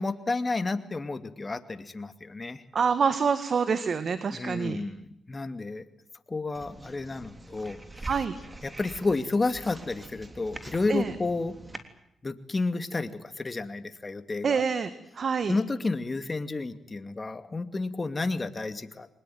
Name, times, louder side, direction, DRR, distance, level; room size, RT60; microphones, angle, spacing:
voice 1, 0.0-2.7 4.3-5.8 6.3-8.1 8.6-11.6 12.2-14.6 15.4-19.1, left 3 dB, 30° left, 10 dB, 2.5 m, -31 dB
voice 2, 2.7-4.8 8.1-8.4 10.9-11.1 14.4-14.9 15.2-15.5, right 6 dB, 60° right, 12 dB, 1.7 m, -26 dB
sound 1, 6.5-11.8, right 2 dB, 25° right, 3.3 m, -44 dB
24.0 x 20.5 x 9.4 m, 0.78 s
supercardioid pair, 60°, 0 cm